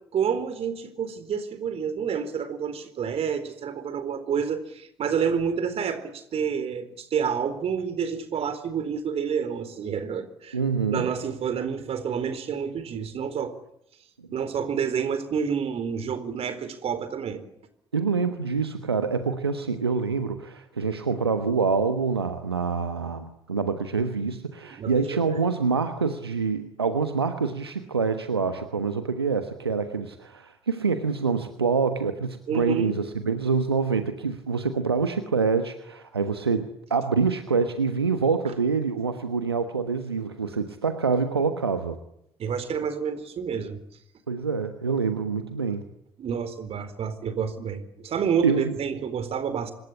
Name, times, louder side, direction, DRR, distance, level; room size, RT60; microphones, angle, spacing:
voice 1, 0.1-10.6 10.9-13.5 14.3-17.4 24.7-25.2 32.5-32.9 42.4-43.8 46.2-49.7, right 7 dB, 50° right, 11 dB, 4.2 m, -29 dB
voice 2, 10.5-11.1 17.9-42.0 44.3-45.8 48.4-48.8, right 5 dB, 90° right, 9 dB, 1.3 m, -26 dB
26.5 x 21.5 x 10.0 m, 0.76 s
figure-of-eight pair, 45°, 13 cm